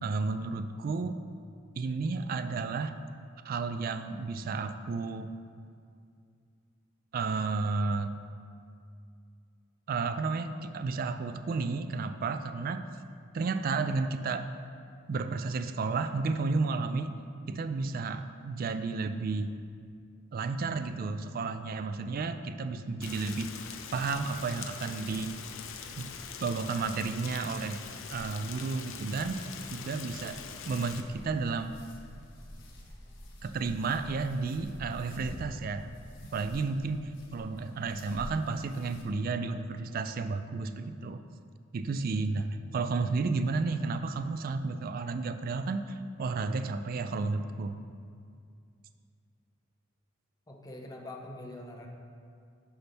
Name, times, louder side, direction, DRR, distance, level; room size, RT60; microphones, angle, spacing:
voice 1, 0.0-1.2 1.8-2.9 3.4-5.3 7.1-8.1 9.9-12.9 13.3-14.5 15.1-17.2 17.5-19.5 20.3-23.5 23.9-25.4 26.0-26.1 26.4-27.8 28.1-31.7 33.4-35.9 36.3-41.2 41.7-47.8, right 4 dB, 45° right, 10 dB, 0.3 m, -32 dB
Rain, 23.0-31.0, left 6 dB, 80° left, 0.6 m, -43 dB
sound 1, 30.9-39.0, equal, 65° left, 1.3 m, -47 dB
voice 2, 50.5-51.9, left 1 dB, 20° left, 0 dB, 0.8 m, -44 dB
10.0 x 5.7 x 3.5 m, 2.3 s
head